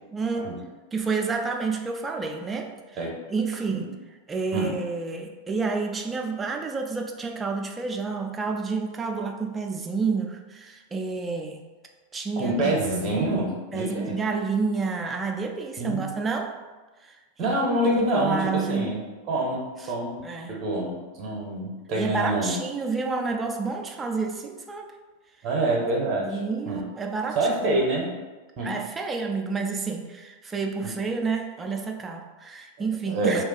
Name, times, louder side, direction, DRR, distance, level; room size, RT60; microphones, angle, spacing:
voice 1, 0.1-0.5 0.9-2.7 3.3-3.9 4.3-11.6 12.1-12.8 13.7-16.5 17.0-17.5 18.0-18.9 20.2-20.6 21.9-24.9 26.2-27.4 27.7-27.8 28.6-33.4, right 4 dB, 15° right, 3 dB, 0.4 m, -29 dB
voice 2, 12.4-14.1 15.8-16.2 17.4-19.0 19.3-22.5 25.4-26.4 26.7-26.8 27.3-28.1 28.6-28.8 30.8-30.9 32.8-33.4, right 1 dB, 35° right, -1 dB, 0.7 m, -26 dB
2.3 x 2.3 x 3.9 m, 1.3 s
figure-of-eight pair, 90°, 0 cm